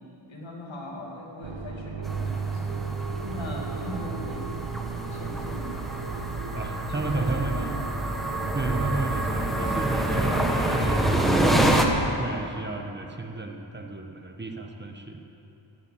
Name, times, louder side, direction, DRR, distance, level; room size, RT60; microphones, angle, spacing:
voice 1, 0.3-2.8 3.3-4.7 5.1-5.9 6.9-7.9, left 2 dB, 70° left, -1 dB, 2.6 m, -40 dB
sound 1, 1.4-12.0, right 5 dB, 65° right, 1.1 m, -33 dB
sound 2, 2.0-11.9, right 1 dB, ahead, 1.1 m, -27 dB
voice 2, 6.5-7.7 8.5-11.1 11.8-15.2, right 2 dB, 25° right, 3 dB, 1.0 m, -33 dB
15.0 x 9.0 x 8.5 m, 2.9 s
wide cardioid pair, 145°, 48 cm